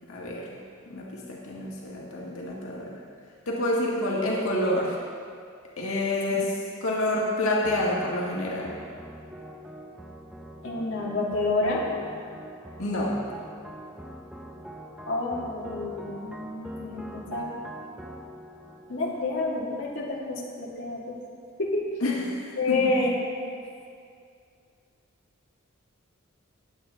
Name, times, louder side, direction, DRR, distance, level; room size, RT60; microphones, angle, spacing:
voice 1, 0.1-0.6 0.9-2.9 3.5-5.0 5.8-8.7 12.8-13.2 22.0-22.9, left 1 dB, 85° left, -4 dB, 1.7 m, -28 dB
sound 1, 7.6-20.1, right 1 dB, 5° right, 0.6 m, -43 dB
voice 2, 10.6-11.8 15.1-17.6 18.9-21.2 21.6-21.9 22.6-23.1, left 2 dB, 60° left, -4 dB, 1.8 m, -29 dB
18.5 x 7.9 x 3.4 m, 2.3 s
head